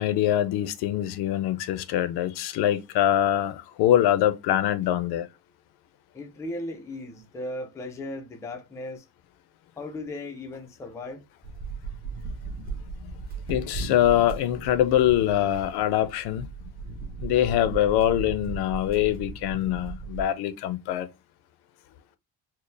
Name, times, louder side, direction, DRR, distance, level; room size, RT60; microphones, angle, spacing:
voice 1, 0.0-5.3 13.0-13.1 13.5-16.5 17.2-21.1, left 11 dB, 85° left, 0.6 m, -24 dB
voice 2, 6.1-9.0 9.8-11.2, left 1 dB, 10° left, 0.3 m, -36 dB
sound 1, 11.4-20.3, right 4 dB, 25° right, 0.8 m, -37 dB
4.3 x 2.0 x 3.1 m
cardioid pair, 180°, 38 cm